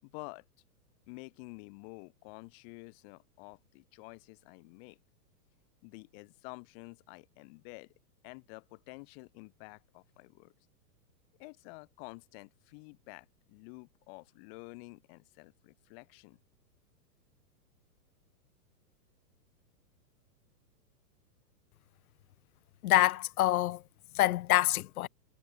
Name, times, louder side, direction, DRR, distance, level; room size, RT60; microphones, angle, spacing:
voice 1, 0.0-0.4 1.1-5.0 5.8-7.9 8.2-10.5 11.4-16.4, left 33 dB, 35° left, 4.7 m, -50 dB
voice 2, 22.8-23.8 24.1-25.1, left 15 dB, 60° left, 0.8 m, -26 dB
hypercardioid pair, 155°, 49 cm